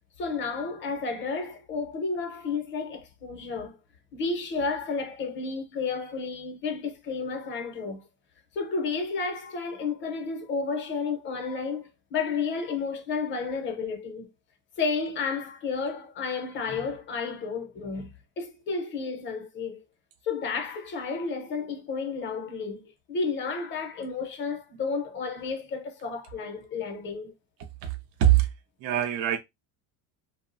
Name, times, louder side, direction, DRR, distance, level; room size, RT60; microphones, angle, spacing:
voice 1, 0.2-3.8 4.1-8.1 8.5-14.3 14.8-19.8 20.2-27.3, left 4 dB, 30° left, 0.6 m, -32 dB
voice 2, 27.8-28.5 28.8-29.4, right 12 dB, 45° right, 0.4 m, -23 dB
2.7 x 2.1 x 2.5 m
cardioid pair, 150°, 39 cm